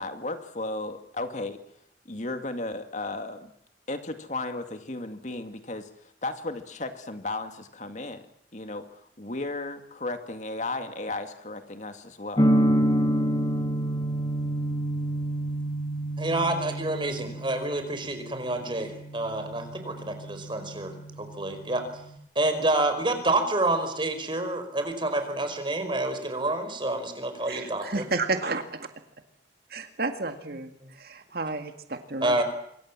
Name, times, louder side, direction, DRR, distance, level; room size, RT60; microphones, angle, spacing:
voice 1, 0.0-1.6 2.1-3.5 3.9-8.2 8.5-12.5, left 2 dB, 40° left, 8 dB, 2.2 m, -35 dB
sound 1, 12.4-22.1, right 1 dB, 25° left, 2.5 m, -28 dB
voice 2, 16.2-20.9 21.2-21.8 22.4-28.0 30.8-30.9 32.2-32.4, right 2 dB, 30° right, 7 dB, 5.2 m, -28 dB
voice 3, 27.5-28.9 29.7-32.4, right 3 dB, 60° right, 7 dB, 2.0 m, -32 dB
26.5 x 24.5 x 7.5 m, 0.74 s
head